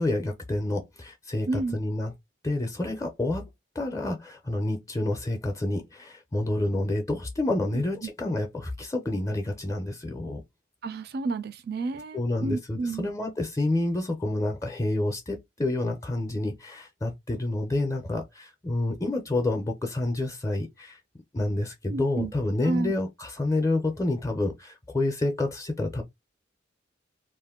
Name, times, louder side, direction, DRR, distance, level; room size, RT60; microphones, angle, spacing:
voice 1, 0.0-2.1 2.4-3.5 3.8-10.4 12.1-21.0 21.3-26.0, left 2 dB, 15° left, 0.5 m, -28 dB
voice 2, 1.5-1.8 7.7-7.8 10.8-13.1 21.9-22.3 22.6-22.9, right 3 dB, 55° right, 0.4 m, -31 dB
2.5 x 2.1 x 3.5 m
head